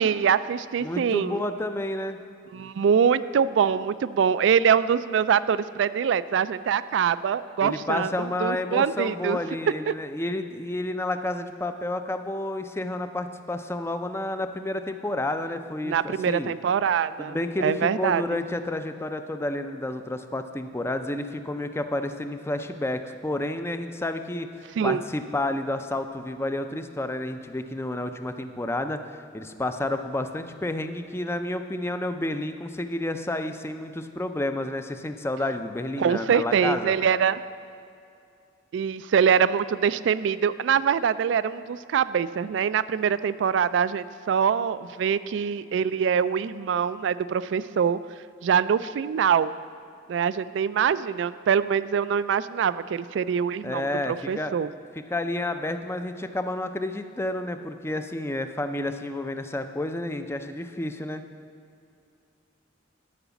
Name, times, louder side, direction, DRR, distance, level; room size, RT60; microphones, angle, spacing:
voice 1, 0.0-1.4 2.5-9.4 9.9-10.0 15.8-18.4 24.8-25.0 36.0-37.4 38.7-48.0 48.4-49.5 50.1-54.7, right 7 dB, 65° right, 15 dB, 0.3 m, -24 dB
voice 2, 0.8-2.2 7.6-16.5 17.2-36.9 53.6-54.5 55.0-61.2, left 1 dB, 15° left, 8 dB, 0.4 m, -30 dB
12.0 x 5.0 x 6.9 m, 2.5 s
head